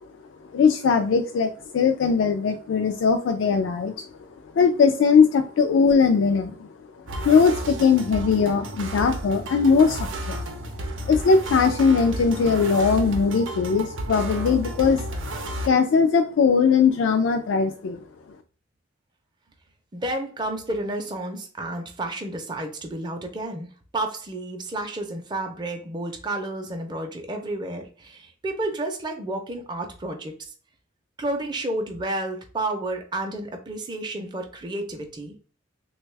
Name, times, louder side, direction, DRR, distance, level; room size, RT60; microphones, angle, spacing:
voice 1, 0.5-4.0 4.6-6.7 7.2-10.4 11.1-15.3 15.7-18.0, left 5 dB, 75° left, 6 dB, 0.3 m, -20 dB
sound 1, 7.1-15.7, right 1 dB, 85° right, 0.6 m, -32 dB
voice 2, 19.9-23.7 23.9-30.5 31.2-35.3, right 2 dB, 25° right, 3 dB, 0.5 m, -31 dB
3.3 x 2.2 x 3.2 m, 0.39 s
head